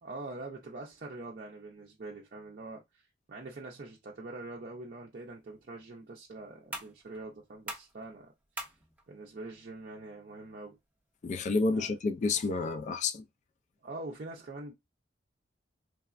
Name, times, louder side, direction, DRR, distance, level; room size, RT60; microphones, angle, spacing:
voice 1, 0.0-3.0 3.3-8.3 9.1-10.8 11.7-11.9 13.8-14.7, right 2 dB, 50° right, 0.5 m, -44 dB
sound 1, 5.2-12.2, right 1 dB, 10° right, 0.7 m, -49 dB
voice 2, 11.2-13.2, left 3 dB, 40° left, 0.3 m, -30 dB
3.3 x 2.0 x 2.4 m
head